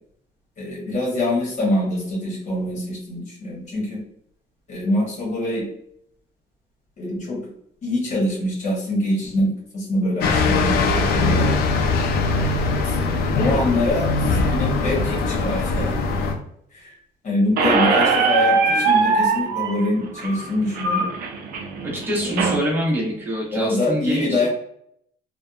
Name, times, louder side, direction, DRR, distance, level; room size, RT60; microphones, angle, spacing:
voice 1, 0.6-4.0 4.7-5.7 7.0-7.5 7.8-11.5 12.8-13.0 13.3-15.8 16.7-17.0 17.2-21.0 23.5-24.5, left 1 dB, 45° left, -5 dB, 1.1 m, -24 dB
sound 1, 10.2-16.3, left 3 dB, 65° left, 0.5 m, -21 dB
Squeak, 17.6-22.6, right 4 dB, 60° right, 0.5 m, -21 dB
voice 2, 21.8-24.5, equal, 10° right, -4 dB, 1.0 m, -25 dB
2.6 x 2.2 x 2.4 m, 0.72 s
cardioid pair, 110°, 17 cm